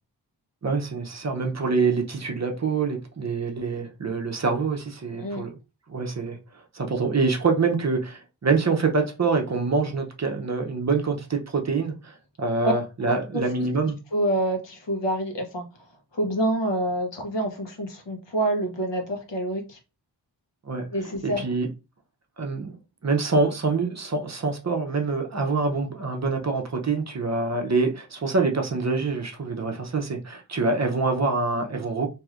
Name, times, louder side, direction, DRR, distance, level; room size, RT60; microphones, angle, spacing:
voice 1, 0.6-5.5 5.9-6.4 6.7-14.0 20.6-20.9 21.2-21.7 22.4-22.7 23.0-32.1, right 4 dB, 40° right, 0.6 m, -25 dB
voice 2, 5.1-5.4 12.6-12.7 13.3-13.4 14.1-15.7 16.1-19.8 20.9-21.5, right 1 dB, 70° left, 1.0 m, -27 dB
3.1 x 2.7 x 2.4 m
wide cardioid pair, 85°, 45 cm